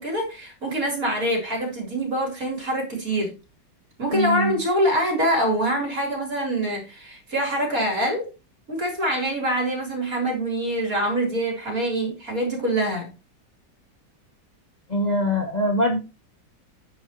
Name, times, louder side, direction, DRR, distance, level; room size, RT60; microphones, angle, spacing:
voice 1, 0.0-3.3 4.0-8.3 8.7-13.1, right 1 dB, 50° right, 4.3 m, -25 dB
voice 2, 4.1-4.5 14.9-16.0, left 1 dB, 25° left, 1.1 m, -23 dB
9.9 x 9.7 x 3.1 m
omnidirectional pair, 2.0 m